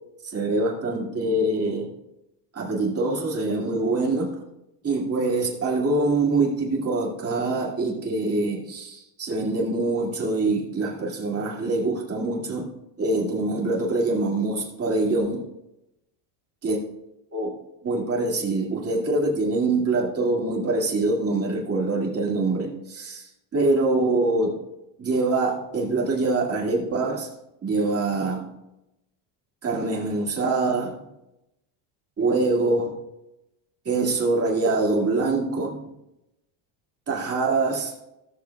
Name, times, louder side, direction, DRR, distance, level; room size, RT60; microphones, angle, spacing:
voice 1, 0.2-1.9 2.5-4.3 4.8-12.7 13.0-15.5 16.6-16.8 17.3-17.6 17.8-23.3 23.5-24.6 25.0-27.3 27.6-28.4 29.6-31.0 32.2-32.9 33.8-35.9 37.1-37.9, right 2 dB, 30° right, -2 dB, 2.5 m, -24 dB
17.0 x 6.8 x 2.4 m, 0.91 s
cardioid pair, 125°, 49 cm